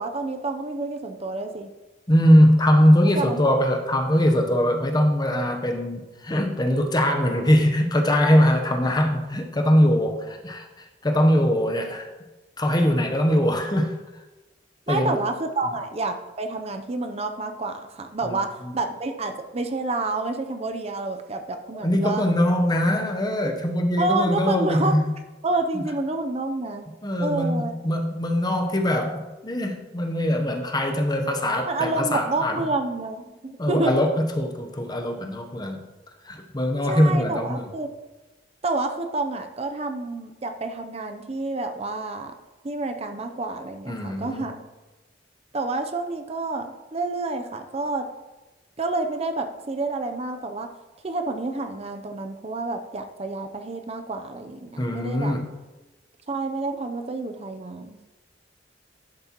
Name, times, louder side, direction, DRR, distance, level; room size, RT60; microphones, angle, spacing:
voice 1, 0.0-1.7 3.1-3.6 14.9-22.2 24.0-25.0 25.4-26.9 27.2-27.7 31.6-33.9 36.9-37.9 38.6-42.3 42.6-44.6 45.5-48.0 48.8-50.7 51.0-55.3 56.3-58.0, right 3 dB, 35° right, 6 dB, 0.6 m, -29 dB
voice 2, 2.1-10.7 11.0-12.1 12.6-13.9 14.9-15.2 15.7-15.8 18.2-18.7 21.8-25.0 25.7-25.8 27.0-32.6 33.6-35.8 36.2-37.7 43.9-44.5 54.8-55.4, equal, 20° left, 4 dB, 0.8 m, -21 dB
11.5 x 7.6 x 3.0 m, 1.1 s
head